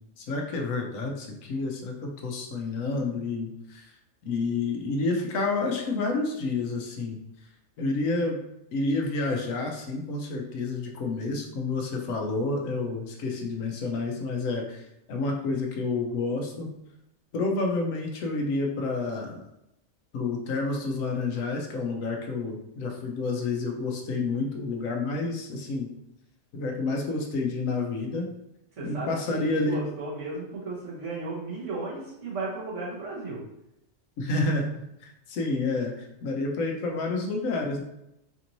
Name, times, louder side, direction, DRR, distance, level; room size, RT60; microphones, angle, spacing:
voice 1, 0.2-3.8 4.2-7.2 7.8-8.4 8.7-16.7 17.3-19.4 20.1-25.9 26.5-28.3 28.8-29.8 34.2-34.7 35.0-37.8, left 3 dB, 90° left, 2 dB, 1.1 m, -29 dB
voice 2, 28.8-33.4, right 3 dB, 70° right, -7 dB, 1.6 m, -35 dB
4.3 x 2.6 x 2.9 m, 0.84 s
omnidirectional pair, 1.3 m